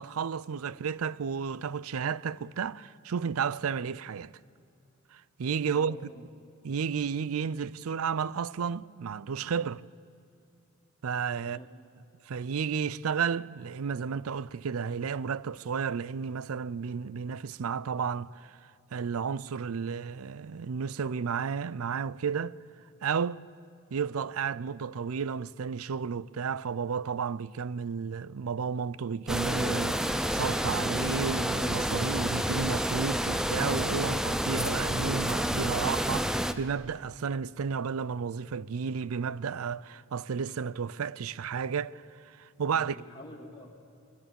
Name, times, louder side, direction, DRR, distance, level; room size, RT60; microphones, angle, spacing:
voice 1, 0.0-4.3 5.1-6.0 6.6-9.8 11.0-11.6 12.3-18.6 18.9-22.6 23.0-23.4 23.9-43.0, right 6 dB, 85° right, 0.5 m, -32 dB
voice 2, 5.7-6.3 11.4-11.7 42.7-43.9, equal, 20° left, 2.2 m, -48 dB
sound 1, 29.3-36.5, equal, 5° right, 0.6 m, -29 dB
21.5 x 21.0 x 6.9 m
head